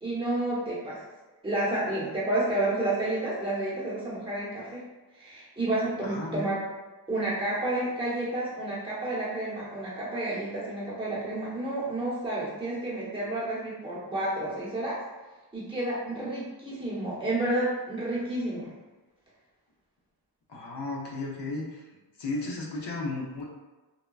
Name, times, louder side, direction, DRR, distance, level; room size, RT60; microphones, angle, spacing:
voice 1, 0.0-1.0 1.4-4.8 5.1-6.6 7.1-15.0 15.5-18.7, right 1 dB, 10° right, -10 dB, 0.8 m, -30 dB
voice 2, 6.0-6.5 20.5-21.8 22.2-23.4, left 2 dB, 70° left, -2 dB, 0.6 m, -34 dB
3.6 x 2.2 x 2.3 m, 1.2 s
wide cardioid pair, 170°, 43 cm